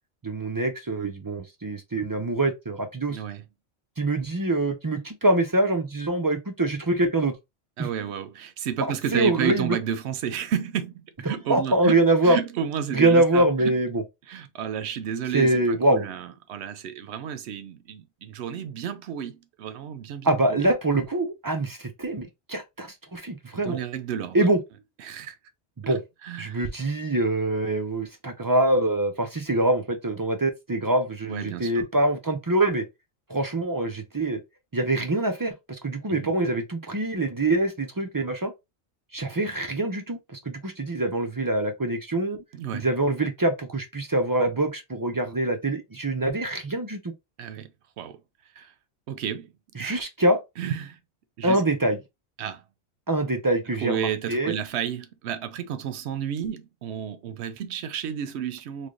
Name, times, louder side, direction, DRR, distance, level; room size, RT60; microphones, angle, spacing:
voice 1, 0.2-3.2 4.0-7.3 7.8-7.9 9.1-9.8 11.5-12.4 12.9-14.0 15.3-16.0 20.2-23.8 24.3-24.6 25.8-26.0 26.4-32.9 33.3-34.4 34.7-38.5 39.1-42.4 42.7-47.1 49.8-50.4 51.4-52.0 53.1-54.5, right 2 dB, 30° right, 0.3 m, -24 dB
voice 2, 3.1-3.4 7.8-13.8 14.3-20.7 23.5-24.5 25.0-25.4 25.8-26.6 31.3-31.9 36.1-36.3 42.5-42.9 47.4-47.7 48.0-48.2 48.6-48.7 49.1-49.5 49.8-50.0 50.6-51.0 51.4-51.6 52.4-52.6 53.8-58.9, right 9 dB, 80° right, 0.8 m, -32 dB
3.2 x 2.1 x 3.7 m
omnidirectional pair, 1.1 m